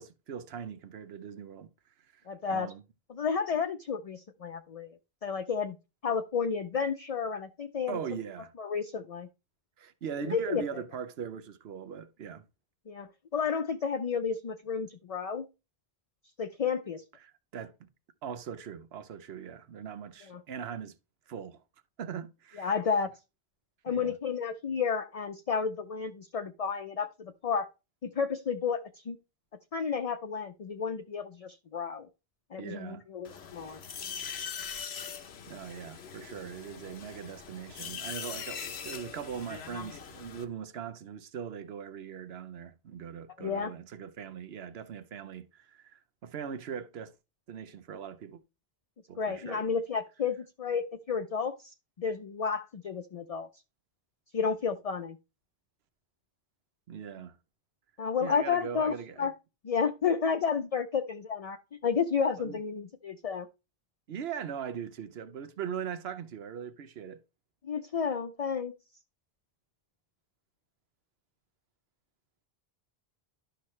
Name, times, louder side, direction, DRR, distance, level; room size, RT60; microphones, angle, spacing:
voice 1, 0.0-1.7 2.1-2.2 2.5-2.8 7.9-8.5 9.8-12.5 17.2-17.9 18.2-20.9 21.3-21.6 22.0-22.7 23.9-24.1 32.6-33.0 34.9-35.0 35.5-47.1 47.5-48.4 49.1-49.6 56.9-57.4 58.2-59.3 62.4-62.6 64.1-67.2, right 7 dB, 80° right, 1.0 m, -40 dB
voice 2, 2.3-2.7 3.1-5.0 5.2-5.8 6.0-8.0 8.6-9.3 10.2-10.8 12.9-15.5 16.4-17.0 20.3-20.4 22.5-23.1 23.8-27.7 28.0-29.2 29.7-32.1 32.5-33.8 43.4-43.7 49.2-53.5 54.3-55.2 58.0-59.3 59.6-63.5 67.6-68.7, left 6 dB, 45° left, 0.6 m, -31 dB
sound 1, 33.2-40.4, left 7 dB, 90° left, 1.1 m, -41 dB
11.5 x 5.9 x 3.2 m
omnidirectional pair, 1.0 m